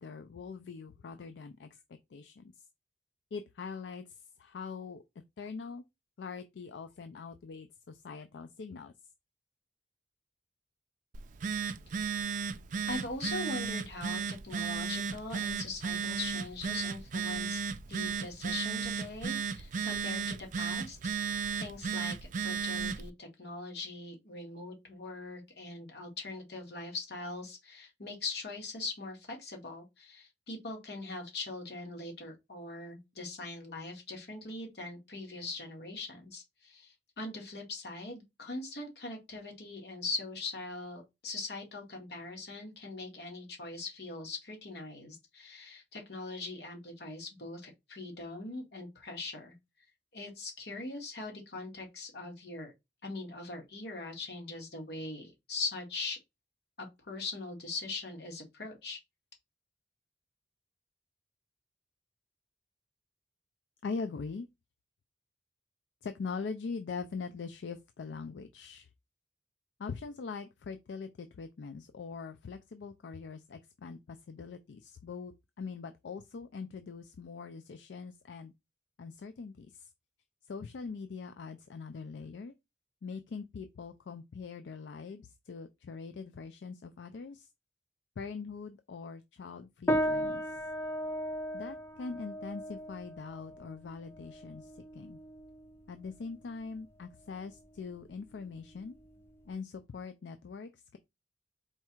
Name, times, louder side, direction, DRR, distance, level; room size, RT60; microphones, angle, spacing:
voice 1, 0.0-2.6 3.3-5.0 5.4-5.8 6.2-8.9 63.8-64.5 66.0-68.9 69.8-78.5 79.0-79.9 80.4-82.5 83.0-87.5 88.2-90.4 91.5-95.2 95.9-98.9 99.5-101.0, left 5 dB, 80° left, 0.4 m, -42 dB
Telephone, 11.1-23.1, right 6 dB, 45° right, 0.4 m, -35 dB
voice 2, 12.9-17.6 17.9-21.0 21.5-49.5 50.1-52.7 53.0-56.2 56.8-59.0, left 3 dB, 65° left, 1.5 m, -41 dB
sound 1, 89.9-99.5, equal, 15° left, 0.5 m, -37 dB
4.4 x 2.3 x 4.4 m
head